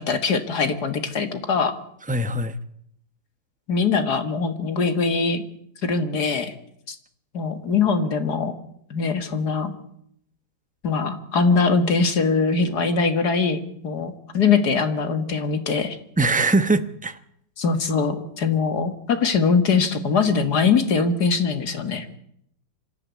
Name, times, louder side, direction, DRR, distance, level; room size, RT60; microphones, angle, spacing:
voice 1, 0.0-1.8 3.7-5.4 5.8-6.5 6.9-7.0 7.3-8.5 8.9-9.8 10.8-16.0 17.6-22.1, left 5 dB, 60° left, 9 dB, 2.3 m, -22 dB
voice 2, 2.1-2.6 16.2-17.2, right 2 dB, 5° right, 11 dB, 0.7 m, -21 dB
26.0 x 13.0 x 9.5 m, 0.72 s
omnidirectional pair, 2.0 m